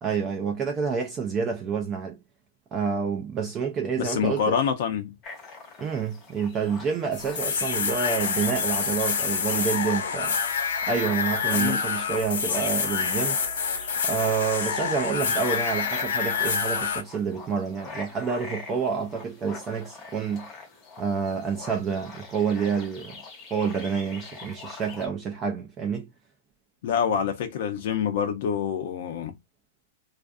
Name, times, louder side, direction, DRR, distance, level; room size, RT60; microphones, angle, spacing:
voice 1, 0.0-2.2 2.7-4.5 5.8-10.4 10.9-13.4 14.0-20.5 21.0-23.2 23.5-26.1, right 6 dB, 20° right, 0.4 m, -28 dB
voice 2, 4.0-5.1 11.5-11.8 26.8-29.4, left 7 dB, 55° left, 0.5 m, -26 dB
sound 1, 5.2-25.1, left 4 dB, 20° left, 0.7 m, -44 dB
sound 2, 7.1-17.0, left 6 dB, 80° left, 0.8 m, -27 dB
2.4 x 2.4 x 2.4 m
supercardioid pair, 165°, 0 cm